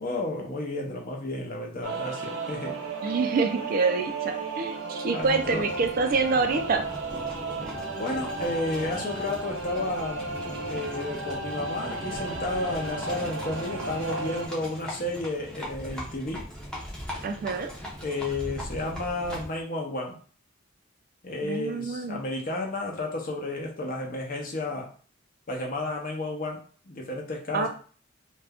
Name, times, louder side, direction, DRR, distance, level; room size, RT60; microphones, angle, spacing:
voice 1, 0.0-2.8 5.1-5.7 8.0-10.3 10.7-16.5 18.0-20.2 21.2-24.9 25.5-26.6 26.9-27.7, left 2 dB, 45° left, 0 dB, 0.7 m, -32 dB
sound 1, 1.8-14.5, right 3 dB, 70° right, 0.9 m, -34 dB
voice 2, 3.0-6.8 17.2-17.7 21.4-22.2 27.5-27.7, right 4 dB, 45° right, 6 dB, 0.3 m, -26 dB
Livestock farm animals working animals, 5.2-19.6, equal, 5° left, 0.6 m, -40 dB
2.5 x 2.2 x 3.5 m, 0.41 s
head